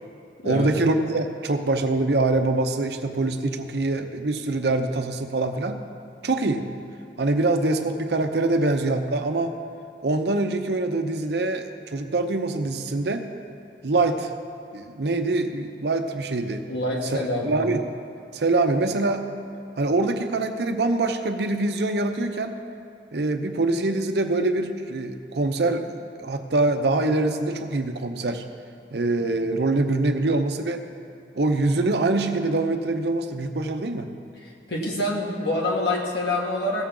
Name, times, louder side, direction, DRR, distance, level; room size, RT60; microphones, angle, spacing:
voice 1, 0.4-5.8 6.2-6.7 7.2-9.6 10.0-13.3 13.8-14.3 14.7-16.6 17.4-17.8 18.3-19.3 19.8-22.6 23.1-28.4 28.9-30.9 31.3-34.1, right 2 dB, 75° right, 6 dB, 0.7 m, -24 dB
voice 2, 16.7-17.7 34.7-36.9, left 1 dB, 75° left, -3 dB, 1.8 m, -26 dB
16.5 x 7.2 x 3.8 m, 2.6 s
head